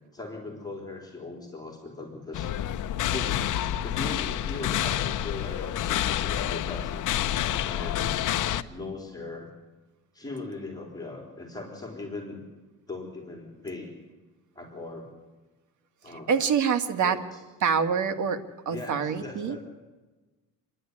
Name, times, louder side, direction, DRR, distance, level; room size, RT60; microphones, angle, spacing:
voice 1, 0.1-2.5 3.1-7.1 7.6-8.2 8.7-9.5 10.1-12.5 12.9-13.9 14.5-15.1 16.0-16.3 17.0-17.4 18.7-19.6, left 3 dB, 10° left, 0 dB, 3.9 m, -39 dB
sound 1, 2.3-8.6, left 11 dB, 65° left, 0.9 m, -28 dB
voice 2, 16.1-17.2 17.6-19.6, right 6 dB, 60° right, 7 dB, 1.9 m, -26 dB
28.0 x 11.0 x 9.8 m, 1.2 s
cardioid pair, 115°, 34 cm